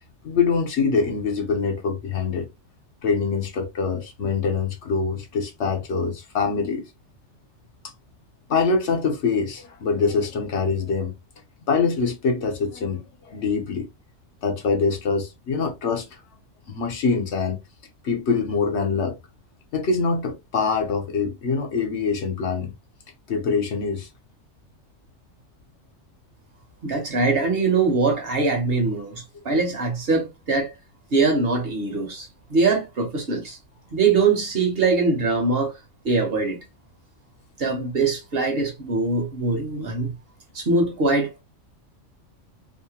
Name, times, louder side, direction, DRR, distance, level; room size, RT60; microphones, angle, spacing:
voice 1, 0.2-2.5 3.0-6.9 8.5-11.1 11.7-13.9 14.4-16.1 16.7-17.6 18.0-19.2 19.7-22.7 23.3-24.1, left 5 dB, 65° left, 1.0 m, -24 dB
voice 2, 26.8-30.7 31.1-33.6 33.9-35.7 36.0-36.6 37.6-40.1 40.5-41.4, right 3 dB, 55° right, 1.0 m, -22 dB
2.8 x 2.1 x 2.8 m
omnidirectional pair, 1.3 m